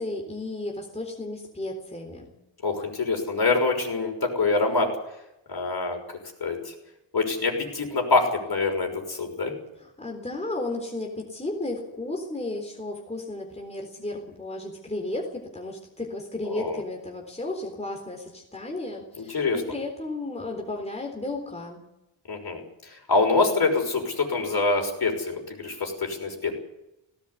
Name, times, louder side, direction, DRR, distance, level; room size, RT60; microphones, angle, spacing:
voice 1, 0.0-2.3 9.8-21.8, left 2 dB, 15° left, 1 dB, 3.8 m, -34 dB
voice 2, 2.6-4.9 5.5-6.0 6.4-6.7 7.1-9.5 16.5-16.8 19.2-19.6 22.3-26.5, left 3 dB, 50° left, 2 dB, 6.0 m, -25 dB
18.5 x 18.0 x 8.4 m, 0.89 s
wide cardioid pair, 120°, 49 cm